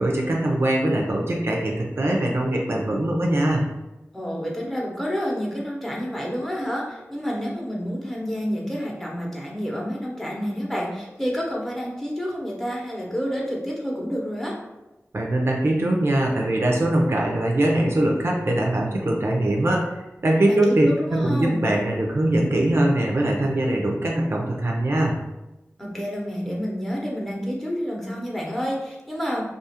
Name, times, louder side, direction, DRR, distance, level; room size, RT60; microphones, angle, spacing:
voice 1, 0.0-3.6 15.1-25.1, right 1 dB, 55° right, -1 dB, 0.5 m, -22 dB
voice 2, 4.1-14.6 20.5-21.7 25.8-29.4, equal, 5° left, -3 dB, 0.8 m, -29 dB
2.4 x 2.4 x 2.8 m, 0.99 s
cardioid pair, 45°, 5 cm